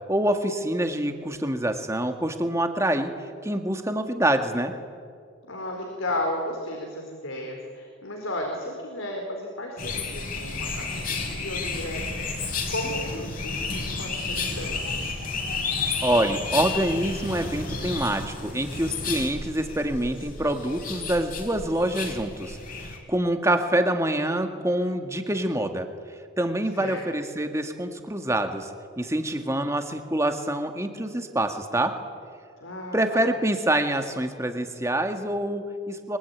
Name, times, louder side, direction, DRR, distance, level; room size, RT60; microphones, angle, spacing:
voice 1, 0.1-3.1 3.4-4.7 16.0-25.9 26.4-28.7 29.0-32.0 32.9-36.2, right 1 dB, 15° right, 6 dB, 1.9 m, -26 dB
voice 2, 5.5-15.1 26.7-27.0 32.6-33.2, left 1 dB, 90° left, 1 dB, 4.4 m, -34 dB
sound 1, 9.8-23.0, left 4 dB, 45° left, 4.3 m, -31 dB
24.0 x 23.5 x 9.7 m, 2.1 s
head